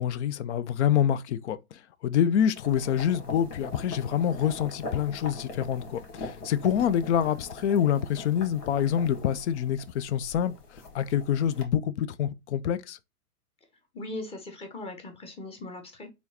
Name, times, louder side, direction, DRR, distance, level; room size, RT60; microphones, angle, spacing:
voice 1, 0.0-10.5 10.9-13.0, left 9 dB, 50° left, 0.5 m, -26 dB
sound 1, 2.5-11.6, left 3 dB, 80° left, 1.8 m, -42 dB
voice 2, 13.9-16.1, left 2 dB, 15° left, 0.9 m, -39 dB
4.3 x 3.5 x 2.8 m
hypercardioid pair, 125°, 45 cm